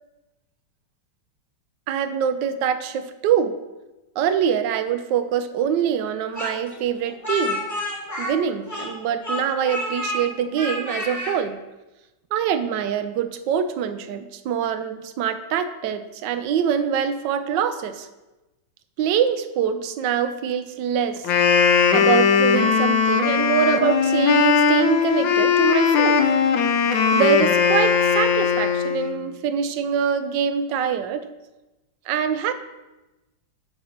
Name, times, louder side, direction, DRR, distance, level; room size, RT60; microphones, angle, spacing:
voice 1, 1.9-3.5 4.2-7.6 8.2-11.6 12.3-18.1 19.0-21.5 21.9-26.2 27.1-31.3 32.1-32.5, right 8 dB, 75° right, 10 dB, 1.2 m, -24 dB
Speech, 6.4-9.0 9.2-10.2 10.6-11.3, left 1 dB, 10° left, 1.5 m, -29 dB
Wind instrument woodwind instrument, 21.2-29.2, left 6 dB, 75° left, 1.4 m, -19 dB
8.4 x 3.9 x 5.8 m, 1.0 s
omnidirectional pair, 2.2 m